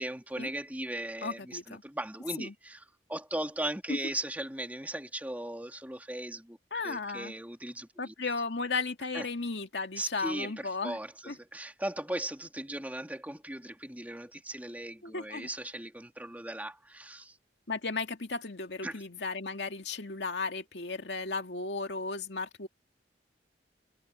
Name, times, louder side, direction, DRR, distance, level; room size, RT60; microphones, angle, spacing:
voice 1, 0.0-2.8 3.1-6.6 6.8-8.1 9.1-9.3 9.9-17.4 18.8-19.0, right 1 dB, 10° right, 2.7 m, -38 dB
voice 2, 1.2-1.8 2.4-2.5 3.9-4.0 6.7-7.3 8.0-11.0 11.3-11.4 15.0-15.5 17.7-22.7, left 3 dB, 80° left, 2.2 m, -35 dB
head